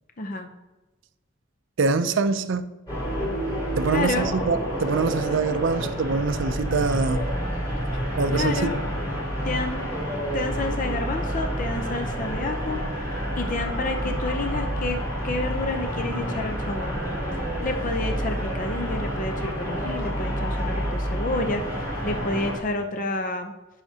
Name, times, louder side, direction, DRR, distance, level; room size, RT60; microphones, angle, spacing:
voice 1, 0.2-0.5 3.9-4.3 8.3-8.8 9.4-9.8 10.3-15.0 15.2-17.0 17.6-23.5, left 2 dB, 40° left, 0.6 m, -30 dB
voice 2, 1.8-2.7 3.2-3.3 3.8-7.2 8.2-8.7, right 4 dB, 65° right, 0.5 m, -24 dB
sound 1, 2.9-22.6, equal, 20° left, 3.4 m, -28 dB
16.0 x 5.7 x 2.8 m
head